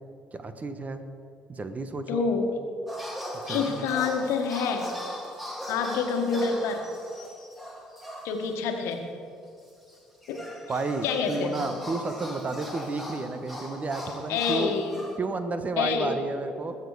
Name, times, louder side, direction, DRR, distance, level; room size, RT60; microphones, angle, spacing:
voice 1, 0.3-1.0 1.5-2.3 3.4-3.9 10.7-14.7 15.2-16.8, right 3 dB, 30° right, 9 dB, 1.4 m, -32 dB
voice 2, 2.1-2.5 3.5-4.9 5.7-6.9 8.2-9.1 10.3-10.5 11.0-11.6 14.3-15.1 15.8-16.1, left 5 dB, 70° left, 4 dB, 1.5 m, -27 dB
sound 1, 2.9-8.6 8.9-9.0 9.9-15.2, equal, ahead, 2.4 m, -39 dB
21.0 x 7.4 x 4.8 m, 2.5 s
hypercardioid pair, 55°, 5 cm